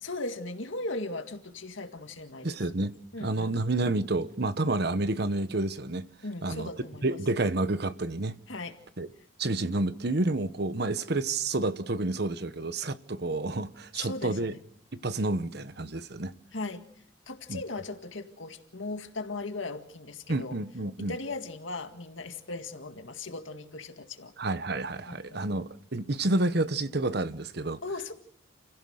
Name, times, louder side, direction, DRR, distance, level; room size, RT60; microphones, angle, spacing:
voice 1, 0.0-2.7 3.1-3.5 6.2-7.1 8.5-8.8 13.9-14.6 16.5-16.9 17.3-20.6 21.0-24.3 25.1-25.4 27.8-28.1, left 2 dB, 80° left, 2.0 m, -38 dB
voice 2, 2.4-2.9 3.2-6.1 6.4-6.7 7.0-8.3 9.0-9.1 9.4-14.5 15.0-16.3 17.5-17.6 20.3-21.1 24.4-27.8, right 2 dB, 55° right, 1.1 m, -29 dB
29.5 x 16.5 x 6.5 m
head